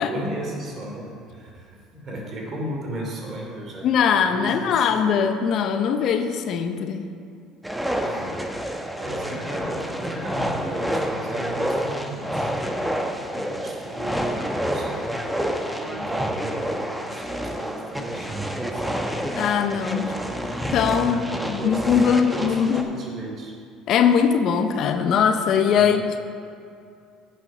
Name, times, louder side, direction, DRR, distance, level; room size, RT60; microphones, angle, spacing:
voice 1, 0.0-4.9 8.0-8.4 9.0-12.5 13.3-14.2 14.6-15.1 15.8-19.0 20.1-20.3 21.0-23.5 25.7-26.0, right 1 dB, 45° right, -1 dB, 2.8 m, -35 dB
voice 2, 3.8-7.0 19.4-20.2 20.7-22.8 23.9-26.2, left 7 dB, 60° left, 8 dB, 0.7 m, -21 dB
sound 1, 7.6-22.8, equal, 5° right, 0.9 m, -28 dB
9.7 x 6.7 x 5.6 m, 2.4 s
supercardioid pair, 85°, 0 cm